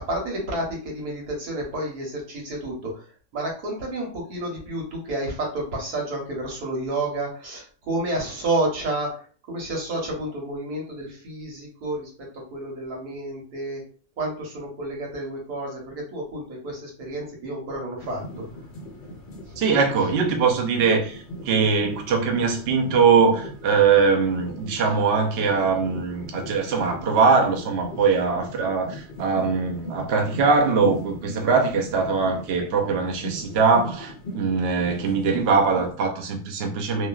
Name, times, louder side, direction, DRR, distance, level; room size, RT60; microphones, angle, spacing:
voice 1, 0.0-18.6 19.4-19.6, right 1 dB, 80° right, 1.5 m, -30 dB
sound 1, 18.0-35.9, left 1 dB, 65° left, 0.5 m, -38 dB
voice 2, 19.6-37.1, right 5 dB, 60° right, 0.6 m, -22 dB
3.0 x 2.3 x 2.3 m
omnidirectional pair, 1.6 m